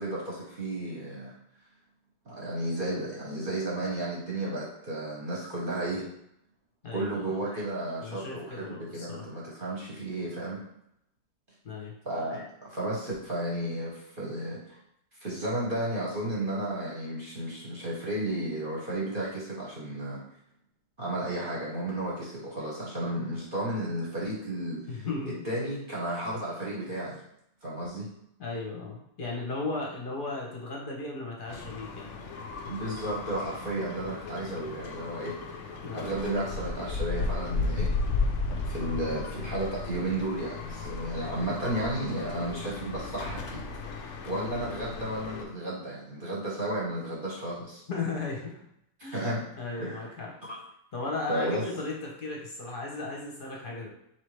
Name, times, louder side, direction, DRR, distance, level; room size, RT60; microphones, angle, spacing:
voice 1, 0.0-1.4 2.2-6.1 6.9-10.6 12.0-14.8 15.2-20.2 21.0-24.8 25.3-27.2 27.6-28.1 32.7-37.9 38.6-47.8 49.1-49.4 49.7-50.1 50.4-50.6 51.3-51.7, right 1 dB, 40° right, -5 dB, 0.9 m, -33 dB
voice 2, 6.8-7.4 8.0-9.3 11.6-11.9 24.9-25.4 28.4-32.2 35.8-36.1 47.9-48.5 49.0-50.3 50.9-53.9, left 3 dB, 45° left, -2 dB, 0.8 m, -36 dB
sound 1, 31.5-45.4, left 3 dB, 75° left, 0.6 m, -35 dB
4.3 x 2.9 x 3.2 m, 0.76 s
omnidirectional pair, 1.8 m